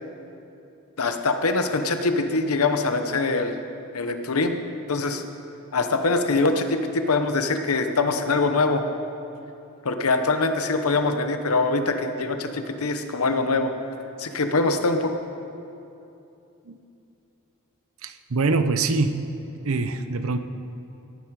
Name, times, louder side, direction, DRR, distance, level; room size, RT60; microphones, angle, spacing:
voice 1, 1.0-3.5 3.9-4.5 4.9-5.2 5.7-8.8 9.8-13.7 14.2-15.1, left 3 dB, 85° left, 7 dB, 0.9 m, -23 dB
voice 2, 18.0-19.3 19.6-20.4, right 3 dB, 75° right, 10 dB, 0.7 m, -24 dB
18.0 x 9.8 x 4.8 m, 2.8 s
head